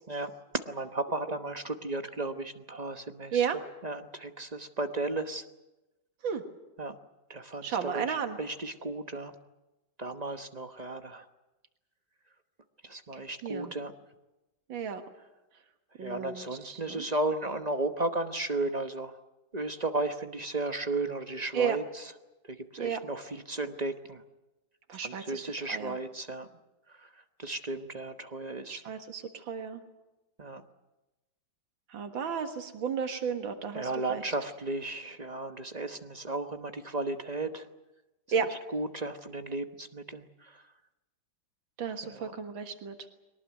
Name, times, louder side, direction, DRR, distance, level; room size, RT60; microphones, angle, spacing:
voice 1, 0.7-3.4 3.8-5.4 6.8-6.9 7.3-9.3 10.0-11.3 12.8-13.9 16.0-19.1 19.5-22.1 22.5-24.2 25.0-26.5 27.0-27.1 27.4-28.8 30.4-30.6 33.7-37.7 38.7-40.6 42.0-42.3, right 2 dB, 30° right, 8 dB, 0.8 m, -34 dB
voice 2, 7.6-8.4 13.4-13.7 14.7-15.0 16.0-17.1 21.5-21.8 22.8-23.0 24.9-26.0 27.5-27.6 28.7-29.8 31.9-34.3 38.3-38.5 41.8-43.0, right 7 dB, 90° right, 7 dB, 2.4 m, -33 dB
22.0 x 19.0 x 9.3 m, 1.0 s
omnidirectional pair, 2.1 m